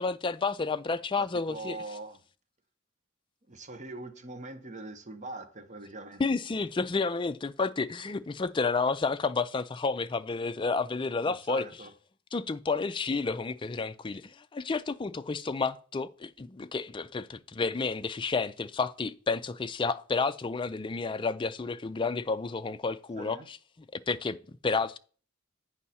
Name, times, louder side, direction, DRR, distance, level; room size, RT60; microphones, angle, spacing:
voice 1, 0.0-1.8 6.2-11.6 12.3-23.4 23.9-24.4 24.6-25.0, left 4 dB, 25° left, 0.4 m, -30 dB
voice 2, 1.2-2.2 3.5-6.3 11.2-11.9 23.2-23.5, right 2 dB, 35° right, 0.9 m, -42 dB
8.8 x 5.5 x 4.2 m
head